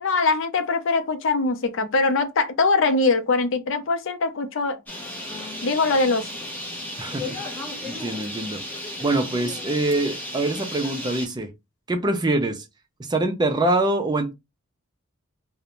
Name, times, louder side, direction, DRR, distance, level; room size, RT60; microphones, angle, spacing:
voice 1, 0.0-4.8 5.6-6.3, left 3 dB, 65° left, 0.5 m, -22 dB
Bird, 4.9-11.3, left 1 dB, 10° left, 0.7 m, -34 dB
voice 2, 7.0-7.4 7.8-8.6 9.0-11.5 11.9-12.6 13.0-14.3, right 2 dB, 20° right, 0.4 m, -24 dB
2.5 x 2.0 x 2.9 m
head